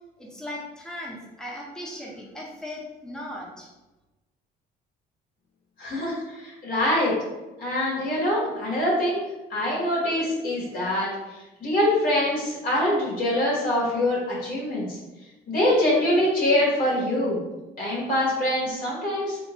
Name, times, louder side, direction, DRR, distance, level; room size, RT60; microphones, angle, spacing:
voice 1, 0.2-3.7, left 1 dB, 5° left, -3 dB, 0.8 m, -37 dB
voice 2, 5.8-7.1 7.6-9.2 9.5-11.1 11.6-15.0 15.5-17.4 17.8-19.4, left 1 dB, 60° left, -6 dB, 1.4 m, -24 dB
3.1 x 3.1 x 3.0 m, 1.1 s
cardioid pair, 110°, 17 cm